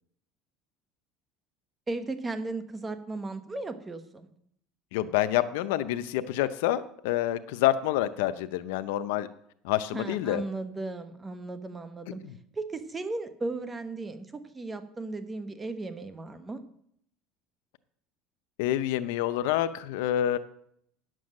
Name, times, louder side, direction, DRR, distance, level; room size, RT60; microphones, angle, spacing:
voice 1, 1.9-4.3 9.9-12.2 12.5-16.6, right 3 dB, 15° right, 10 dB, 1.1 m, -36 dB
voice 2, 4.9-9.3 9.6-10.4 18.6-20.4, left 13 dB, 85° left, 11 dB, 0.6 m, -27 dB
10.5 x 7.6 x 6.5 m, 0.69 s
supercardioid pair, 125°, 0 cm